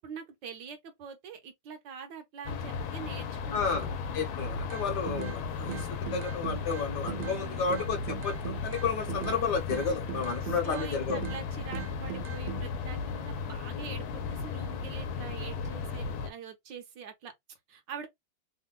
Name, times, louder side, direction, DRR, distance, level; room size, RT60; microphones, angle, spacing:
voice 1, 0.0-4.0 7.2-7.8 10.4-18.1, right 6 dB, 70° right, 1.3 m, -44 dB
sound 1, 2.4-16.3, left 5 dB, 85° left, 1.5 m, -35 dB
voice 2, 3.5-3.9 4.1-11.2, left 5 dB, 65° left, 1.3 m, -32 dB
sound 2, 4.7-5.4 5.7-7.4 7.7-9.4 9.7-11.4 11.7-12.6, right 14 dB, 85° right, 1.5 m, -40 dB
3.6 x 2.1 x 3.6 m
omnidirectional pair, 2.2 m